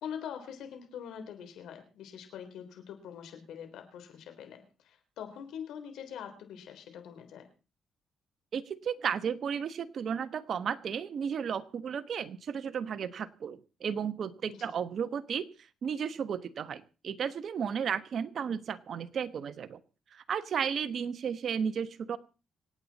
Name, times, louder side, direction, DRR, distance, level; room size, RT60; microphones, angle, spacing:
voice 1, 0.0-7.5 14.5-14.7, left 8 dB, 80° left, 6 dB, 3.7 m, -44 dB
voice 2, 8.5-15.5 15.8-19.8 20.1-22.2, right 7 dB, 55° right, 11 dB, 1.2 m, -34 dB
26.0 x 8.9 x 4.2 m, 0.35 s
cardioid pair, 90°, 0 cm